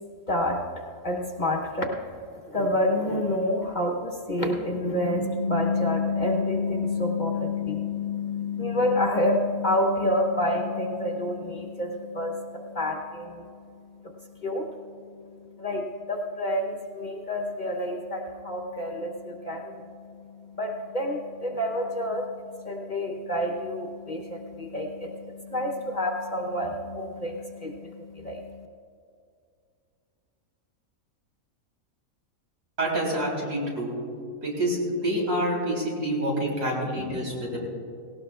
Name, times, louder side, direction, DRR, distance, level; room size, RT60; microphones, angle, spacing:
voice 1, 0.3-0.6 1.0-2.0 2.5-28.6, left 1 dB, 35° left, 1 dB, 0.9 m, -28 dB
voice 2, 32.8-33.9 34.4-37.6, right 1 dB, 80° right, -4 dB, 4.2 m, -27 dB
18.0 x 17.5 x 2.4 m, 2.4 s
omnidirectional pair, 1.5 m